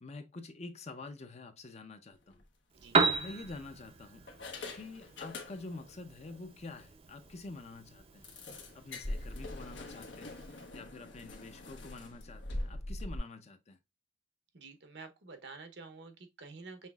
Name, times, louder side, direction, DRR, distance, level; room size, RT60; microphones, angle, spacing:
voice 1, 0.0-2.4 3.2-4.3 4.7-8.3 8.7-13.8, left 3 dB, 35° left, 0.6 m, -47 dB
sound 1, 2.2-2.4 3.1-3.8 4.3-5.9 6.2-6.4 6.8-6.9 7.2-7.3 8.2-13.2, left 1 dB, 80° left, 1.0 m, -43 dB
Piano, 2.7-10.7, right 4 dB, 35° right, 0.5 m, -37 dB
voice 2, 14.5-16.9, right 4 dB, 65° right, 0.8 m, -49 dB
5.6 x 3.1 x 2.3 m
head